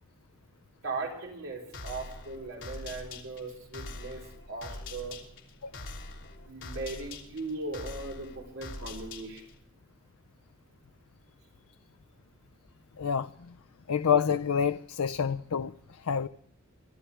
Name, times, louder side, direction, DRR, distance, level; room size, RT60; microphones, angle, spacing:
voice 1, 0.8-5.2 6.4-9.4 15.1-15.2, right 3 dB, 60° right, 4.4 m, -38 dB
sound 1, 1.7-9.6, left 2 dB, 60° left, 3.3 m, -44 dB
voice 2, 13.0-13.6 13.9-16.3, left 7 dB, 80° left, 0.5 m, -28 dB
25.5 x 12.5 x 3.4 m
head